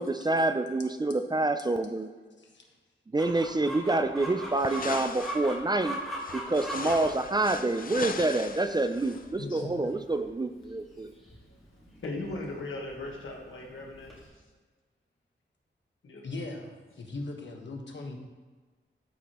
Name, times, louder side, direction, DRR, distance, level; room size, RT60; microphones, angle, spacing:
voice 1, 0.0-2.1 3.1-6.0 6.3-11.1, right 2 dB, 20° right, 9 dB, 0.3 m, -27 dB
Chicken rooster, 3.2-14.3, right 1 dB, ahead, 2.0 m, -42 dB
sound 1, 4.6-5.5 6.2-9.2, left 5 dB, 45° left, 0.4 m, -40 dB
voice 2, 9.4-9.9 11.4-11.5 12.0-14.3 16.0-16.3, left 2 dB, 90° left, 0 dB, 1.5 m, -38 dB
voice 3, 16.2-16.7 17.0-18.2, left 2 dB, 65° left, 2 dB, 1.2 m, -39 dB
13.5 x 4.8 x 3.0 m, 1.4 s
wide cardioid pair, 145°, 20 cm